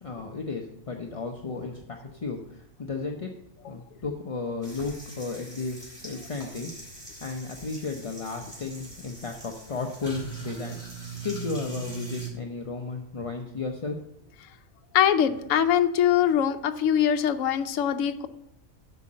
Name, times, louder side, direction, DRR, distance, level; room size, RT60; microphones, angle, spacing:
voice 1, 0.0-3.3 3.7-6.7 7.2-14.0, left 4 dB, 35° left, 2 dB, 0.6 m, -34 dB
sound 1, 4.6-12.3, right 4 dB, 25° right, 3.4 m, -41 dB
voice 2, 14.9-18.3, left 9 dB, 75° left, 8 dB, 1.0 m, -23 dB
8.1 x 5.7 x 7.4 m, 0.79 s
omnidirectional pair, 1.4 m